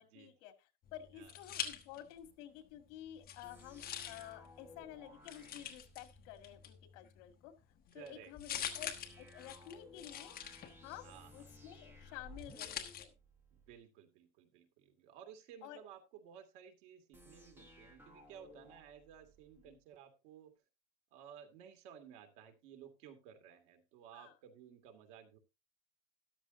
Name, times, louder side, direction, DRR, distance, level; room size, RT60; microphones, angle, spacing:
voice 1, 0.0-7.5 7.9-13.1 15.6-15.8 19.7-19.8 24.1-24.3, left 12 dB, 70° left, 8 dB, 2.0 m, -52 dB
sound 1, 0.8-2.3 2.6-13.0, left 9 dB, 25° left, 1.1 m, -47 dB
sound 2, 3.4-6.7 8.6-13.8 17.1-19.8, left 1 dB, 5° right, 1.3 m, -59 dB
voice 2, 7.9-8.7 11.0-11.3 13.5-20.5 21.1-25.4, right 8 dB, 80° right, 6 dB, 2.5 m, -56 dB
13.5 x 11.5 x 2.7 m, 0.27 s
cardioid pair, 180°, 37 cm